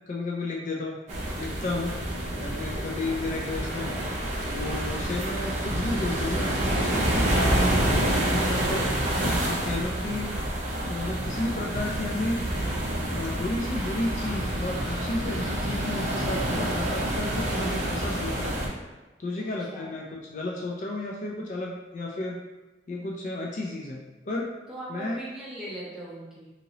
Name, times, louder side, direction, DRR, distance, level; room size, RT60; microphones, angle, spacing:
voice 1, 0.1-1.0 1.3-2.0 2.4-3.9 4.4-8.9 9.4-10.3 10.8-12.4 13.1-18.6 19.2-22.4 22.9-24.5 24.9-25.2, left 2 dB, 45° left, -1 dB, 0.3 m, -33 dB
sound 1, 1.1-18.7, right 1 dB, 40° right, 0.6 m, -28 dB
voice 2, 19.4-19.9 24.7-26.5, right 1 dB, 5° right, -7 dB, 0.8 m, -40 dB
2.8 x 2.8 x 2.8 m, 1.1 s
head